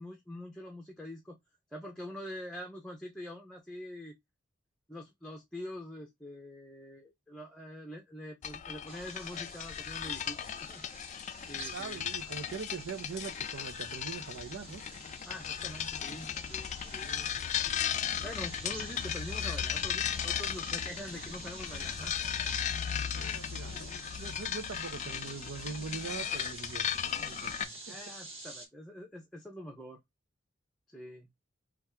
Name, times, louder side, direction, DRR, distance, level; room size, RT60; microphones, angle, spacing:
voice 1, 0.0-1.4 1.7-4.2 4.9-10.4 10.7-11.0 11.5-12.0 15.3-17.3 18.2-22.5 27.6-30.0 30.9-31.3, left 1 dB, 5° left, 0.6 m, -45 dB
sound 1, 8.4-27.6, left 9 dB, 40° left, 0.3 m, -36 dB
sound 2, 8.9-28.7, right 2 dB, 30° right, 1.5 m, -48 dB
voice 2, 11.7-14.8 23.1-26.9 27.2-28.0, right 5 dB, 80° right, 0.6 m, -42 dB
3.5 x 2.4 x 4.3 m
head